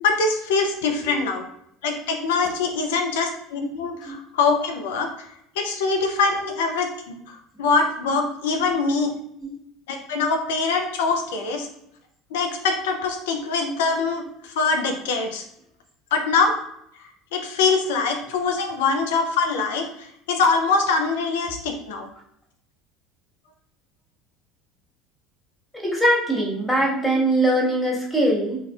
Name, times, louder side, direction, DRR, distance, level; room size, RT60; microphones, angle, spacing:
voice 1, 0.0-1.4 1.8-5.3 5.6-9.1 9.9-11.7 12.3-15.4 16.1-16.5 17.3-19.9 20.3-22.1, left 4 dB, 75° left, 4 dB, 0.4 m, -23 dB
voice 2, 25.8-28.6, right 1 dB, 5° left, -4 dB, 1.4 m, -22 dB
3.9 x 2.6 x 2.3 m, 0.74 s
hypercardioid pair, 75°, 0 cm